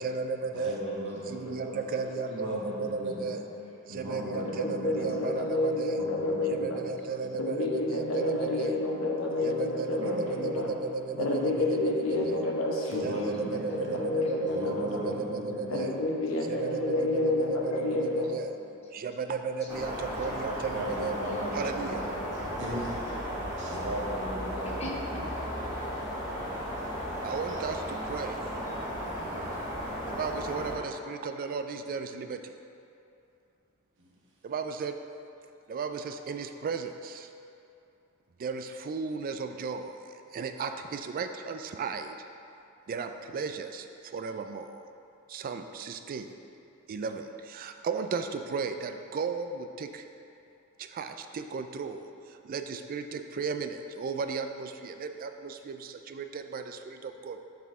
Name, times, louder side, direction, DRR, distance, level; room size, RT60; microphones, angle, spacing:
voice 1, 0.0-0.8 1.3-3.4 3.9-6.0 6.5-8.8 9.4-12.4 13.0-15.9 16.4-18.5 18.9-21.2 21.5-22.1 27.2-28.4 30.1-32.6 34.4-35.0 35.7-37.3 38.4-42.2 42.9-44.9 45.3-46.3 46.9-50.0 50.8-57.5, right 5 dB, 40° right, 8 dB, 0.3 m, -35 dB
voice 2, 0.5-1.8 2.3-3.4 3.9-5.3 6.0-6.8 10.0-10.6 11.1-11.5 12.2-12.4 12.9-14.0 14.4-15.9 20.7-22.2 22.5-23.0 23.6-24.8 27.5-27.6 29.0-29.6 34.0-34.1, right 1 dB, 60° right, -4 dB, 1.1 m, -37 dB
voice 3, 1.3-2.2 3.5-4.0 4.5-4.6 6.5-7.4 8.4-9.0 9.7-10.1 10.6-11.6 12.1-12.5 13.0-14.7 15.6-15.7 17.3-18.6 18.8-19.1 19.6-20.5 21.3-22.9 24.6-25.3, equal, 30° left, -3 dB, 0.9 m, -49 dB
voice 4, 4.3-6.8 7.4-10.7 11.2-15.1 15.7-18.3, left 2 dB, 75° left, -2 dB, 0.9 m, -30 dB
sound 1, 19.7-30.7, equal, 15° right, 1.4 m, -35 dB
6.8 x 4.1 x 3.7 m, 2.7 s
head